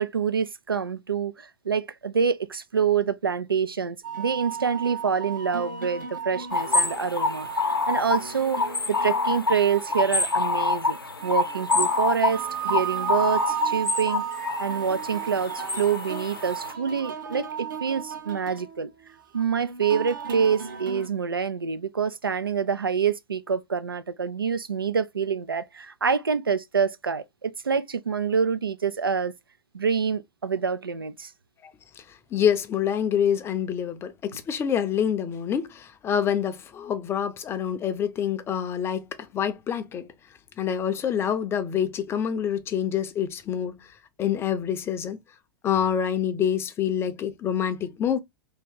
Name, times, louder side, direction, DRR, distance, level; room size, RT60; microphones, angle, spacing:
voice 1, 0.0-7.5 7.9-8.6 8.9-14.2 14.6-18.9 19.3-29.3 29.7-31.3, right 6 dB, 85° right, 0.4 m, -26 dB
sound 1, 4.0-21.1, right 7 dB, 65° right, 1.0 m, -35 dB
sound 2, 6.5-16.7, left 3 dB, 90° left, 0.6 m, -27 dB
voice 2, 32.3-39.0 39.3-40.1 40.6-43.8 44.2-45.2 45.6-48.2, left 8 dB, 20° left, 0.5 m, -26 dB
2.8 x 2.8 x 3.4 m
figure-of-eight pair, 100°, 12 cm